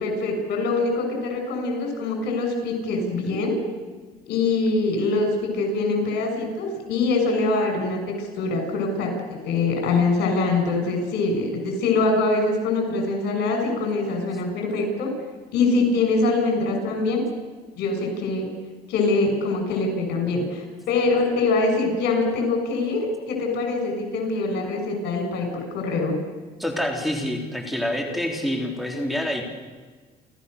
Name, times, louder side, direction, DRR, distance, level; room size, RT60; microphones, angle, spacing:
voice 1, 0.0-3.6 4.3-15.1 15.5-17.2 17.8-18.5 18.9-26.2, left 3 dB, 80° left, 4 dB, 6.9 m, -24 dB
voice 2, 26.6-29.4, left 1 dB, ahead, 1 dB, 3.7 m, -27 dB
30.0 x 14.5 x 6.9 m, 1.4 s
cardioid pair, 110°, 17 cm